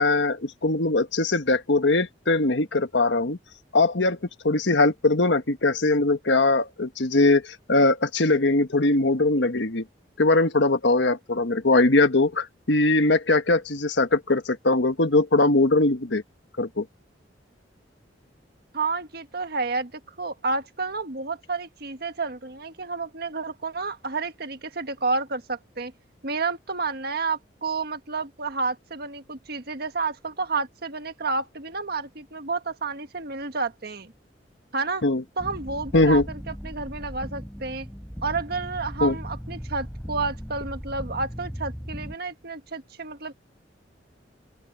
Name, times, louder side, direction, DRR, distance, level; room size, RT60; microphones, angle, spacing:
voice 1, 0.0-3.4 3.7-4.2 4.4-9.8 10.2-16.2 16.6-16.8 35.0-35.2 35.9-36.2 39.0-39.1, left 2 dB, 80° left, 1.4 m, -21 dB
voice 2, 18.7-25.9 26.2-34.1 34.7-35.0 35.4-37.9 38.2-43.3, right 4 dB, 60° right, 1.6 m, -30 dB
sound 1, 35.4-42.2, equal, 5° left, 7.6 m, -37 dB
open air
head